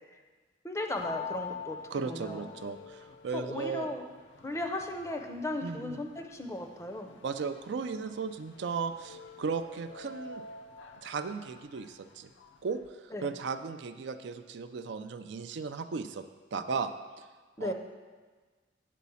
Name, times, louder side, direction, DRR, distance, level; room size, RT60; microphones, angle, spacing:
voice 1, 0.6-1.8 2.1-2.5 3.3-4.0 4.4-7.1 13.1-13.3 17.6-17.7, left 1 dB, 15° left, 4 dB, 0.5 m, -36 dB
sound 1, 1.0-12.9, left 6 dB, 70° left, 0.5 m, -47 dB
voice 2, 1.9-3.9 5.6-6.0 7.2-10.4 11.0-12.3 12.6-16.2 16.5-16.9 17.2-17.3 17.6-17.7, right 5 dB, 70° right, 9 dB, 0.4 m, -36 dB
8.4 x 4.1 x 7.0 m, 1.4 s
head